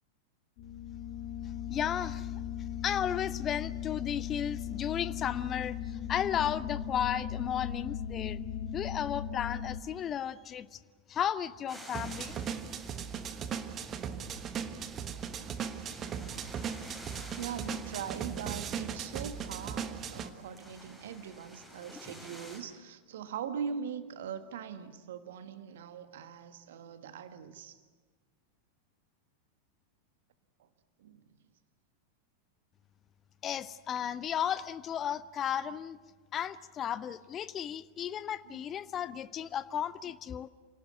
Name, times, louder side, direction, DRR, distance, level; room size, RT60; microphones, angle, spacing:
sound 1, 0.6-9.8, left 10 dB, 45° left, 1.9 m, -38 dB
voice 1, 1.7-2.3 2.8-8.4 8.7-10.8 11.1-12.4 33.4-36.0 36.3-40.5, left 9 dB, 25° left, 17 dB, 0.6 m, -34 dB
sound 2, 11.7-22.6, equal, ahead, 6.7 m, -52 dB
sound 3, 11.9-20.3, right 7 dB, 30° right, 1.3 m, -38 dB
voice 2, 14.8-15.1 17.4-27.8 30.6-30.7 31.0-31.2 38.4-38.6 39.4-39.5, right 7 dB, 55° right, 10 dB, 1.6 m, -41 dB
27.5 x 18.5 x 8.0 m, 1.5 s
figure-of-eight pair, 90°, 0 cm